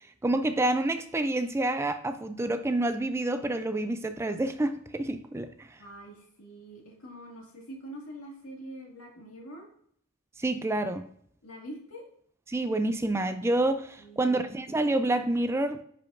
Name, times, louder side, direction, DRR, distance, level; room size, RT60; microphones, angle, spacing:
voice 1, 0.2-5.7 10.4-11.1 12.5-15.8, right 2 dB, 10° right, 0.3 m, -28 dB
voice 2, 5.8-9.7 11.4-12.0 14.0-14.4, right 1 dB, 80° left, 2.0 m, -44 dB
10.0 x 5.1 x 2.5 m
head